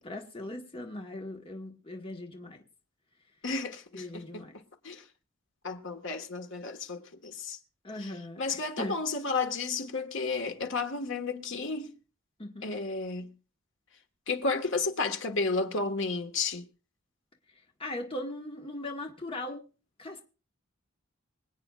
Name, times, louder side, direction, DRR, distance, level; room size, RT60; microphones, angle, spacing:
voice 1, 0.0-2.6 3.9-4.6 7.8-9.0 12.4-12.7 17.8-19.6 20.0-20.2, left 1 dB, 25° left, 1.4 m, -39 dB
voice 2, 3.4-4.5 4.8-5.0 5.6-7.6 8.0-8.1 8.4-11.9 12.6-13.3 14.3-16.6, left 4 dB, 65° left, 1.5 m, -32 dB
25.0 x 8.9 x 2.4 m
head